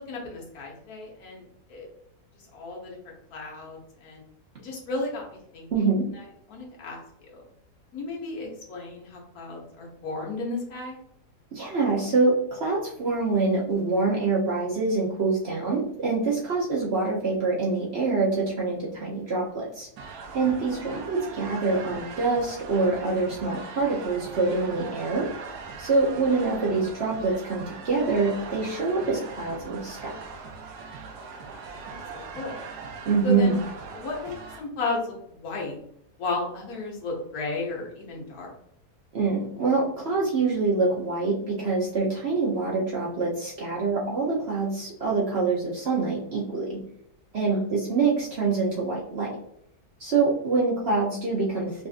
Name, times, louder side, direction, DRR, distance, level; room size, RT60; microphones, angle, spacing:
voice 1, 0.1-1.9 2.5-4.2 4.6-7.0 7.3-7.4 7.9-11.0 31.2-32.6 33.2-33.6 33.9-35.0 35.3-35.8 36.2-38.5 47.5-47.6, left 3 dB, 70° left, -1 dB, 1.5 m, -34 dB
voice 2, 5.7-6.0 11.5-19.9 20.3-25.3 25.8-30.1 33.0-33.6 39.1-46.8 47.3-49.3 50.0-51.9, right 3 dB, 55° right, -3 dB, 0.8 m, -25 dB
sound 1, 20.0-34.6, right 4 dB, 85° right, 1.2 m, -40 dB
5.0 x 2.5 x 2.5 m, 0.72 s
omnidirectional pair, 1.7 m